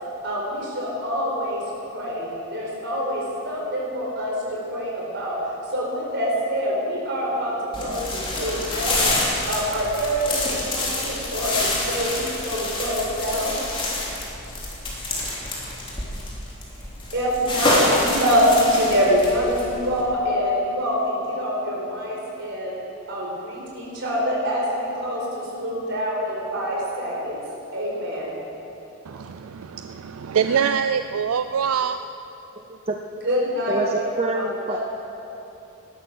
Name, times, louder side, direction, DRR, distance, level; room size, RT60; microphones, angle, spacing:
voice 1, 0.2-1.6 1.9-5.4 5.7-9.1 9.5-13.6 17.1-22.7 23.1-27.4 27.7-28.3 33.2-33.8 34.3-34.8, equal, 55° right, -3 dB, 4.8 m, -25 dB
sound 1, 7.7-20.0, left 2 dB, 25° left, 3.1 m, -27 dB
voice 2, 29.0-32.0, right 7 dB, 85° right, 9 dB, 0.4 m, -24 dB
voice 3, 32.6-33.0 33.7-34.8, right 3 dB, 30° right, 2 dB, 0.7 m, -27 dB
18.5 x 12.5 x 6.4 m, 3.0 s
head